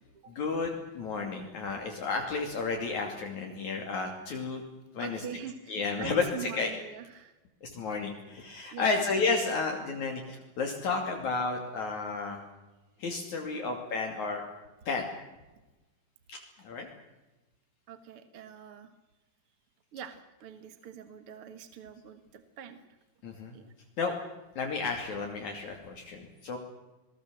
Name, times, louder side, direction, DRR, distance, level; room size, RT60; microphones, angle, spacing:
voice 1, 0.3-4.6 4.9-5.3 5.7-6.7 7.6-12.4 13.0-14.4 14.9-15.1 16.3-16.9 23.2-23.5 24.0-24.1 24.6-26.6, left 4 dB, 60° left, 2 dB, 3.9 m, -32 dB
voice 2, 5.0-7.4 8.7-8.9 17.9-18.9 19.9-22.8 23.5-23.7, right 8 dB, 50° right, 10 dB, 1.9 m, -44 dB
28.0 x 20.5 x 7.6 m, 1.1 s
omnidirectional pair, 3.9 m